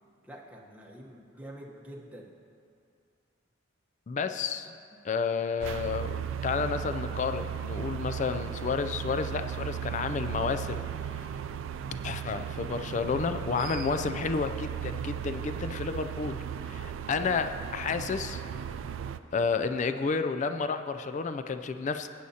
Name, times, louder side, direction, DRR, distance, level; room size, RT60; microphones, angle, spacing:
voice 1, 0.2-2.3 19.0-19.4, right 1 dB, 5° right, -3 dB, 1.0 m, -47 dB
voice 2, 4.1-4.8 5.0-10.8 11.1-11.3 12.0-18.4 19.3-22.1, left 5 dB, 40° left, 9 dB, 0.3 m, -31 dB
sound 1, 5.6-19.2, right 8 dB, 80° right, 0.3 m, -36 dB
14.5 x 9.4 x 2.8 m, 2.4 s
head